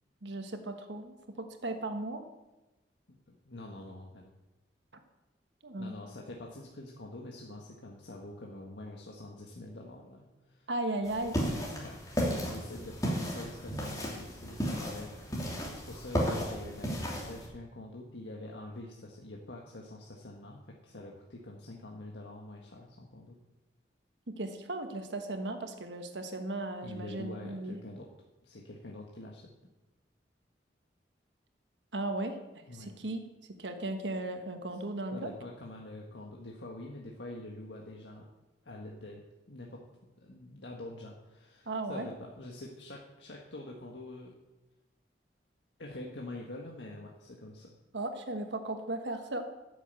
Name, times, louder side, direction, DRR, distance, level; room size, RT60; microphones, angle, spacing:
voice 1, 0.2-2.2 5.6-5.9 10.7-11.4 24.3-27.8 31.9-32.4 32.7-33.3 33.6-35.3 41.7-42.1 47.9-49.5, right 2 dB, 85° right, 6 dB, 1.3 m, -36 dB
voice 2, 3.4-4.3 5.8-10.7 11.7-15.5 15.9-23.4 26.8-28.1 28.4-29.5 32.7-32.9 35.1-38.3 38.6-39.8 40.2-44.3 45.8-47.7, left 1 dB, 85° left, -1 dB, 1.6 m, -45 dB
sound 1, 11.0-17.5, equal, 20° left, 3.0 m, -34 dB
13.0 x 7.1 x 8.3 m, 1.0 s
head